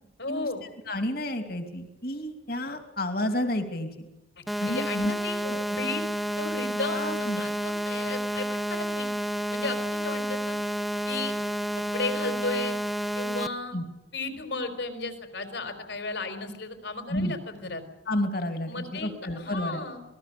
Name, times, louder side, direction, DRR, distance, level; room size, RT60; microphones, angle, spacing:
voice 1, 0.2-0.6 4.4-5.4 5.6-6.0 6.4-9.1 9.5-10.6 11.1-11.3 11.7-12.8 13.1-13.8 14.1-17.8 18.7-19.1 19.4-20.0, left 3 dB, 70° left, 7 dB, 4.6 m, -34 dB
voice 2, 0.9-4.1 4.6-5.1 5.4-5.6 6.9-7.4 13.7-13.8 17.1-17.3 18.1-19.8, left 1 dB, 50° left, 6 dB, 2.9 m, -30 dB
sound 1, 4.5-13.5, equal, ahead, 0.8 m, -30 dB
27.5 x 20.5 x 7.0 m, 0.93 s
head